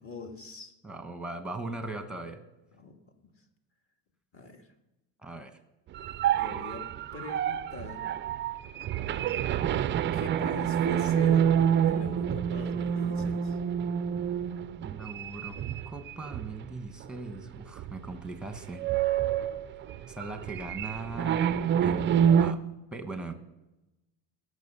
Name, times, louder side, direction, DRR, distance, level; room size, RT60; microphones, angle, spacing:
voice 1, 0.0-0.7 2.7-2.9 3.2-3.3 4.3-4.7 6.4-8.1 10.1-11.5 11.8-13.6, left 3 dB, 30° left, 4 dB, 1.7 m, -42 dB
voice 2, 0.8-2.4 5.2-5.6 14.8-15.6 15.9-18.8 20.1-21.5 21.8-22.6 22.9-23.3, right 2 dB, ahead, 7 dB, 1.1 m, -39 dB
sound 1, 5.9-16.6 17.0-17.2 17.8-18.2 18.4-22.5, right 9 dB, 30° right, 0.4 m, -28 dB
18.0 x 6.7 x 5.5 m, 0.98 s
cardioid pair, 140°, 41 cm